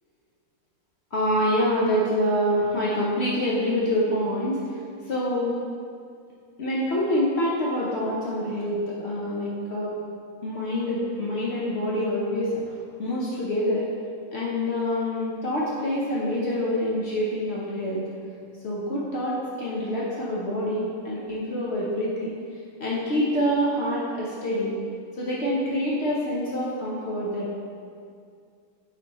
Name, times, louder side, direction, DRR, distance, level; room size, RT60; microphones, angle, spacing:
voice 1, 1.1-5.5 6.6-9.9 10.4-12.6 13.0-13.9 14.3-18.0 18.6-22.4 22.8-24.7 25.2-27.5, equal, 85° left, -6 dB, 0.5 m, -26 dB
6.2 x 5.3 x 2.9 m, 2.3 s
omnidirectional pair, 2.1 m